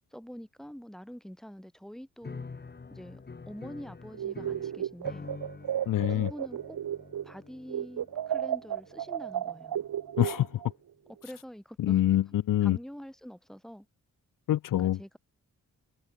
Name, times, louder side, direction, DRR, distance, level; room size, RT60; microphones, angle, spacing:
voice 1, 0.1-2.5 2.9-5.3 6.1-6.8 7.2-9.8 11.1-12.1 12.6-13.9 14.8-15.2, equal, ahead, 4.0 m, -45 dB
sound 1, 2.2-10.6, left 4 dB, 30° left, 3.0 m, -47 dB
sound 2, 4.1-7.4 7.7-10.7, right 10 dB, 85° right, 1.3 m, -33 dB
voice 2, 5.9-6.3 10.2-10.6 11.8-12.8 14.5-15.0, left 13 dB, 70° left, 0.5 m, -25 dB
wide cardioid pair, 175°, 34 cm